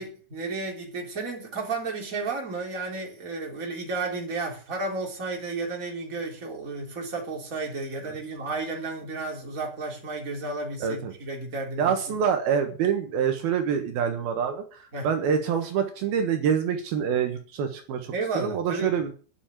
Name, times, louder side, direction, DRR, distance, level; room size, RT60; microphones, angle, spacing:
voice 1, 0.0-11.9 14.9-15.1 18.1-19.0, right 3 dB, 20° right, 0 dB, 3.5 m, -32 dB
voice 2, 10.8-11.1 11.8-19.1, right 7 dB, 75° right, 5 dB, 3.3 m, -26 dB
11.0 x 7.1 x 9.0 m, 0.39 s
omnidirectional pair, 4.5 m